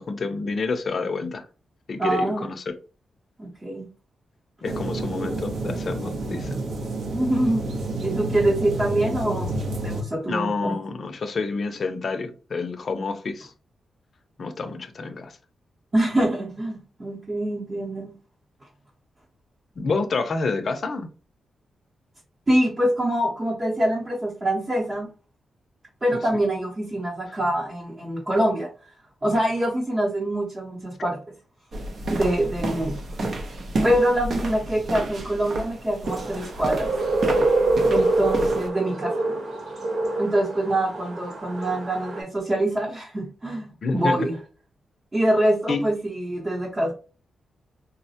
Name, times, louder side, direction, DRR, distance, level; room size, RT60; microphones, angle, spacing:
voice 1, 0.0-1.5 1.9-2.8 4.6-6.6 10.3-13.5 14.4-15.4 19.8-21.1 43.8-44.3 45.7-45.9, left 4 dB, 50° left, 0.5 m, -28 dB
voice 2, 2.0-2.5 3.4-3.9 7.1-9.6 9.8-10.8 15.9-18.1 22.5-25.1 26.0-28.7 29.2-31.2 32.1-33.0 33.2-33.3 33.8-36.9 37.9-39.2 40.2-44.4 45.1-46.9, right 1 dB, 25° right, 0.8 m, -25 dB
sound 1, 4.6-10.0, right 2 dB, 90° right, 0.8 m, -29 dB
sound 2, 31.7-38.7, right 2 dB, 50° right, 0.6 m, -31 dB
sound 3, 36.0-42.2, right 2 dB, 70° right, 1.1 m, -25 dB
3.9 x 2.1 x 2.7 m
wide cardioid pair, 125°, 0 cm